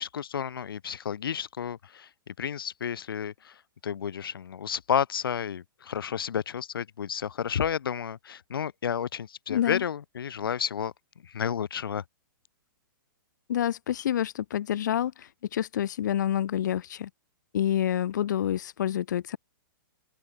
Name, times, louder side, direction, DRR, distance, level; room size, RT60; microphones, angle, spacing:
voice 1, 0.0-10.9 11.2-12.0, left 8 dB, 90° left, 4.6 m, -31 dB
voice 2, 9.5-9.8 13.5-17.1 17.5-19.4, left 10 dB, 55° left, 3.2 m, -28 dB
open air
hypercardioid pair, 175°, 12 cm